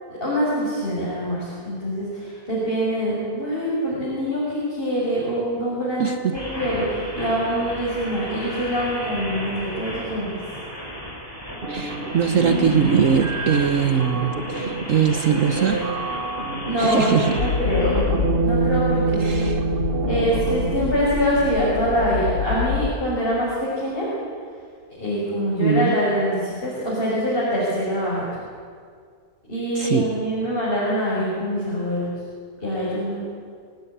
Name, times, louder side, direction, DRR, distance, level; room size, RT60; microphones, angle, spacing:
voice 1, 0.1-10.4 16.7-18.0 18.4-19.5 20.1-24.1 25.0-28.4 29.4-32.1 32.6-33.2, equal, 30° left, -7 dB, 6.4 m, -24 dB
voice 2, 6.0-6.4 11.7-15.9 16.8-17.4 19.2-19.6 25.6-25.9 29.8-30.1, right 7 dB, 55° right, 8 dB, 1.3 m, -21 dB
sound 1, 6.3-18.0, equal, 15° left, 6.4 m, -34 dB
sound 2, 11.6-21.1, right 3 dB, 35° right, 1.5 m, -26 dB
sound 3, 17.4-22.9, left 6 dB, 75° left, 2.5 m, -27 dB
25.0 x 16.5 x 9.9 m, 2.1 s
omnidirectional pair, 1.7 m